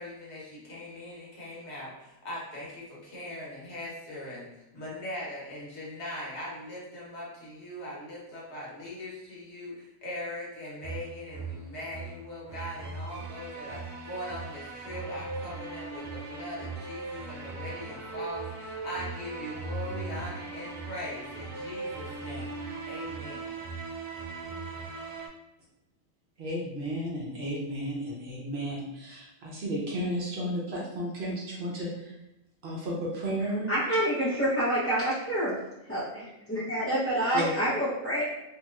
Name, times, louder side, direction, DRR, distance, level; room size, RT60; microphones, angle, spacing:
voice 1, 0.0-4.5 4.7-22.5 22.9-23.5, left 1 dB, 60° left, -5 dB, 1.1 m, -40 dB
sound 1, 10.8-25.3, right 3 dB, 85° right, 1.0 m, -39 dB
voice 2, 26.4-32.2 32.6-33.7 37.3-37.5, equal, 60° right, -4 dB, 0.9 m, -33 dB
voice 3, 33.7-35.5 35.9-38.2, equal, 20° left, -10 dB, 0.3 m, -27 dB
3.0 x 2.8 x 2.3 m, 0.93 s
omnidirectional pair, 1.4 m